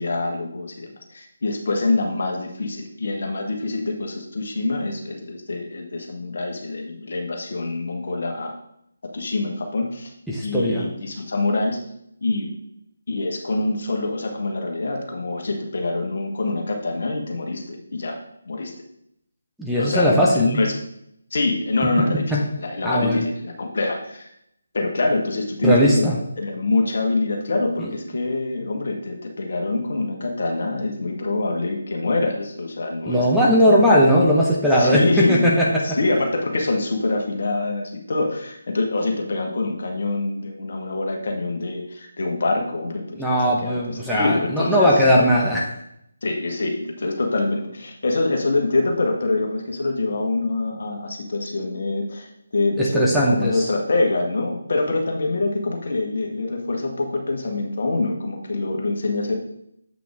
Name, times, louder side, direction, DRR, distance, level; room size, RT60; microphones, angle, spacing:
voice 1, 0.0-8.5 9.1-10.1 10.4-11.8 12.2-12.5 13.1-18.2 18.5-18.7 19.8-20.7 21.3-24.3 24.7-26.1 26.4-33.9 34.8-43.8 44.1-45.1 46.2-59.3, left 2 dB, 55° left, 2 dB, 1.6 m, -25 dB
voice 2, 10.3-10.9 19.6-20.6 22.1-22.4 22.8-23.2 25.6-26.2 27.8-27.9 33.0-35.7 43.2-45.7 52.8-53.6, equal, ahead, -6 dB, 1.0 m, -18 dB
7.8 x 5.9 x 3.6 m, 0.74 s
figure-of-eight pair, 150°, 0 cm